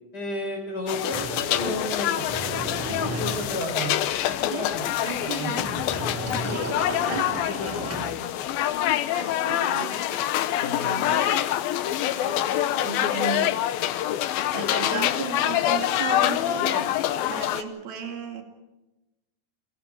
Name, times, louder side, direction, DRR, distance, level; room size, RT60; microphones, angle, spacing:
voice 1, 0.1-2.4 2.9-3.9 4.3-5.8 10.6-11.1, left 1 dB, 25° left, 5.1 m, -33 dB
sound 1, 0.9-17.6, left 12 dB, 85° left, 2.8 m, -26 dB
Sliding door, 1.1-8.6, equal, 5° right, 4.6 m, -35 dB
voice 2, 2.9-3.3 4.5-5.7 6.3-8.0 9.1-10.3 10.7-11.5 12.0-13.6 13.9-14.1 14.5-18.4, right 6 dB, 80° right, 4.4 m, -36 dB
30.0 x 24.0 x 4.8 m
omnidirectional pair, 4.2 m